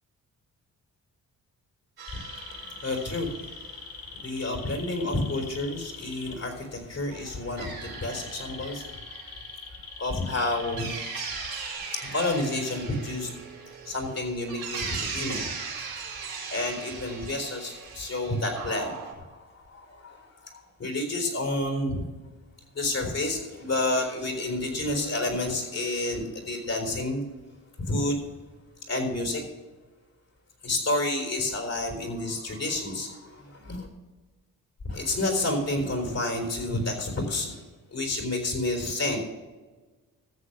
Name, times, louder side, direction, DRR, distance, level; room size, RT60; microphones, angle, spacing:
sound 1, 2.0-3.9 7.1-19.1, right 5 dB, 85° right, 2.8 m, -39 dB
sound 2, 2.1-6.3 7.9-11.7, left 5 dB, 80° left, 2.0 m, -42 dB
voice 1, 2.6-3.4 3.7-8.9 10.0-10.9 11.7-13.3 13.9-15.4 16.5-22.0 22.7-27.2 27.8-28.2 28.9-29.5 30.6-33.9 34.9-37.6 37.9-39.2, left 2 dB, 45° left, 4 dB, 4.1 m, -30 dB
14.0 x 7.3 x 5.9 m, 1.3 s
cardioid pair, 75°, 35 cm